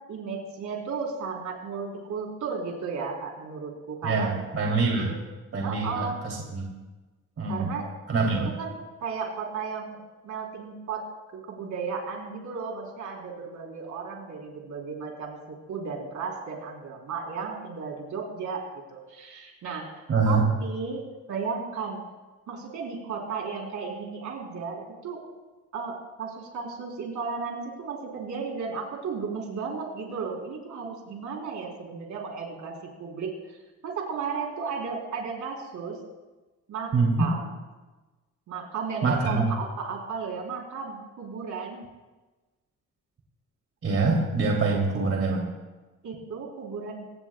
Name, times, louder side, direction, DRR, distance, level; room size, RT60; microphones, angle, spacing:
voice 1, 0.1-4.3 5.0-5.1 5.6-6.2 7.5-7.8 8.2-8.8 9.0-11.1 11.3-22.0 22.5-25.2 25.7-36.0 36.7-37.6 38.5-41.8 44.7-44.8 46.0-47.1, right 5 dB, 75° right, 0 dB, 3.8 m, -34 dB
voice 2, 4.0-5.1 5.5-6.6 7.4-7.7 8.1-8.5 20.1-20.4 36.9-37.3 39.0-39.5 43.8-45.5, right 3 dB, 50° right, -2 dB, 3.1 m, -25 dB
24.5 x 18.0 x 2.3 m, 1.2 s
wide cardioid pair, 165°, 30 cm